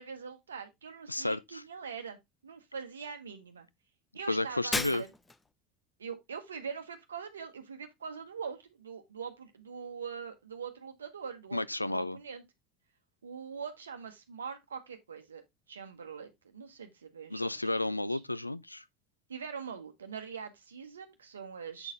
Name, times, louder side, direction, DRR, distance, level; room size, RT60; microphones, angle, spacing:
voice 1, 0.0-2.2 2.4-3.7 4.1-5.1 6.0-12.4 13.2-17.6 18.1-18.2 19.3-21.9, right 6 dB, 75° right, 1.1 m, -43 dB
voice 2, 1.1-1.6 4.3-5.0 11.5-12.2 17.3-18.8, left 2 dB, 90° left, 0.3 m, -32 dB
Shatter, 4.7-5.5, left 3 dB, 15° left, 0.6 m, -34 dB
8.0 x 4.1 x 3.7 m
figure-of-eight pair, 70°, 0 cm